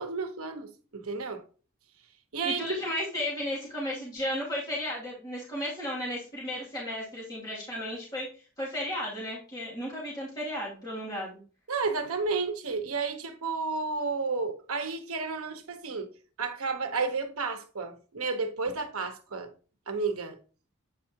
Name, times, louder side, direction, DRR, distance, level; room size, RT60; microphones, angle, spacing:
voice 1, 0.0-1.4 2.3-2.6 11.7-16.1 16.4-19.5 19.9-20.4, right 4 dB, 75° right, 1.1 m, -32 dB
voice 2, 2.4-8.3 8.6-11.4, left 1 dB, 20° left, 2.4 m, -34 dB
8.2 x 4.8 x 2.8 m
head